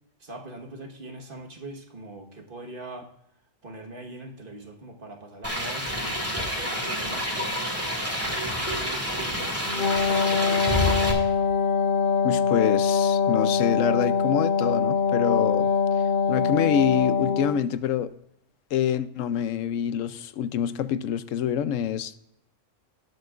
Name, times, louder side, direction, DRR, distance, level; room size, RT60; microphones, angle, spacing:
voice 1, 0.2-3.1 3.6-7.5 8.0-10.7, right 2 dB, 45° right, 1.5 m, -42 dB
sound 1, 5.4-11.1, equal, 10° right, 2.1 m, -28 dB
Wind instrument woodwind instrument, 9.7-17.6, left 6 dB, 45° left, 1.0 m, -23 dB
voice 2, 12.2-15.7 16.3-18.1 18.7-22.2, left 9 dB, 90° left, 1.0 m, -26 dB
18.5 x 7.9 x 2.4 m
omnidirectional pair, 1.3 m